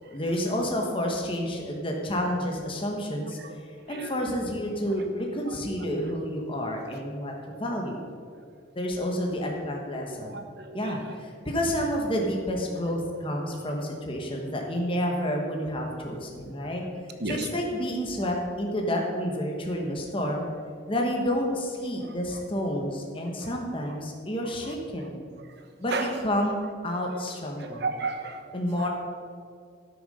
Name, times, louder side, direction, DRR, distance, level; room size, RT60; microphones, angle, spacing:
voice 1, 0.1-8.1 8.7-10.4 10.7-16.8 17.3-20.5 20.9-25.3 25.8-26.5 26.8-27.9 28.5-28.9, equal, 30° left, 0 dB, 1.2 m, -30 dB
voice 2, 10.2-11.0 17.2-17.5 25.9-26.1 27.6-28.4 28.8-28.9, right 3 dB, 60° right, 6 dB, 1.1 m, -33 dB
13.0 x 6.4 x 5.5 m, 2.1 s
head